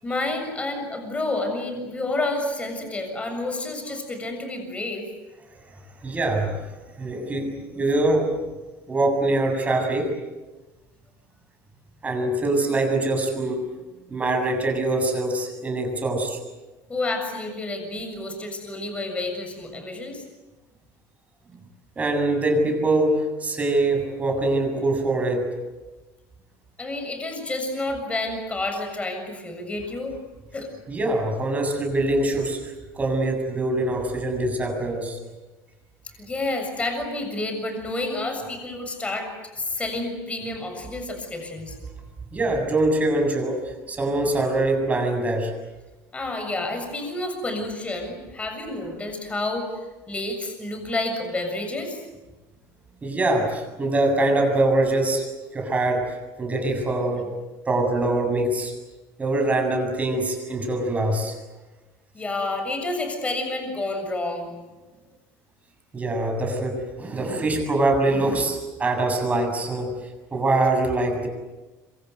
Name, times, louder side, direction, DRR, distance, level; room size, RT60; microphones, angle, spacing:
voice 1, 0.0-5.1 16.9-20.2 26.8-30.2 30.5-30.7 36.2-41.8 46.1-49.7 50.1-52.0 62.1-64.5, left 2 dB, 15° left, 5 dB, 7.1 m, -29 dB
voice 2, 6.0-6.5 7.0-8.3 8.9-10.1 12.0-13.6 14.1-16.4 22.0-25.5 30.9-35.2 42.3-43.6 43.9-45.5 53.0-55.2 55.5-57.3 57.7-58.7 59.2-61.3 65.9-69.9 70.3-71.3, right 2 dB, 20° right, 4 dB, 7.4 m, -23 dB
26.5 x 25.0 x 8.1 m, 1.1 s
cardioid pair, 140°, 7 cm